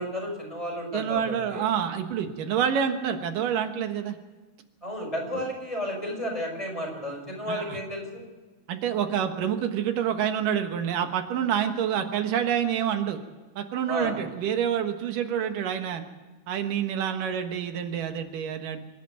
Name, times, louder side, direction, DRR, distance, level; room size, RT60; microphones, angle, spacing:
voice 1, 0.0-1.7 4.8-8.2 13.9-14.2, equal, 10° left, -1 dB, 5.8 m, -32 dB
voice 2, 0.9-4.2 5.3-5.4 7.5-7.8 8.7-13.2 13.6-16.0 16.5-18.8, right 8 dB, 90° right, 6 dB, 3.1 m, -27 dB
26.0 x 11.0 x 9.2 m, 1.2 s
omnidirectional pair, 3.7 m